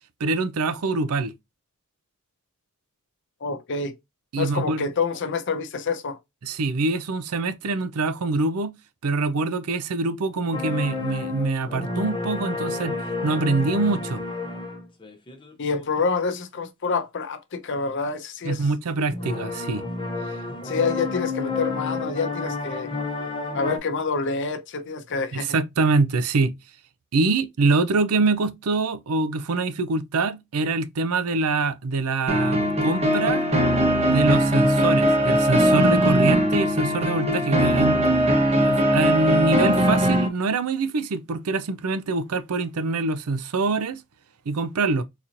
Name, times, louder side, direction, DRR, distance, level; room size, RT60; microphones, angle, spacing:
voice 1, 0.2-1.3 4.3-4.8 6.4-8.7 9.0-13.0 13.2-14.2 18.4-19.8 25.3-26.5 27.1-33.5 34.1-38.0 38.6-44.0 44.5-45.0, right 3 dB, 85° right, 0.5 m, -24 dB
voice 2, 3.4-3.9 4.4-6.2 15.6-18.7 20.6-22.9 23.5-25.6, left 4 dB, 55° left, 0.7 m, -27 dB
sound 1, 10.5-16.4 19.1-23.8, left 3 dB, 25° left, 0.7 m, -30 dB
sound 2, 32.3-40.3, equal, 30° right, 1.0 m, -20 dB
4.0 x 2.9 x 2.5 m
head